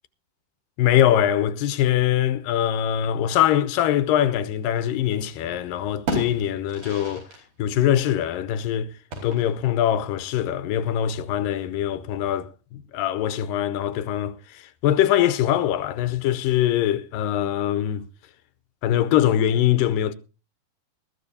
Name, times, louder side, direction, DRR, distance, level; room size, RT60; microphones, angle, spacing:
voice 1, 0.8-7.2 7.6-8.9 9.2-18.0 18.8-20.1, left 11 dB, 80° left, 2.4 m, -22 dB
sound 1, 4.8-5.5 5.8-7.5 7.7-7.8 9.1-9.8, right 1 dB, 80° right, 6.3 m, -33 dB
22.0 x 13.5 x 2.8 m
omnidirectional pair, 4.0 m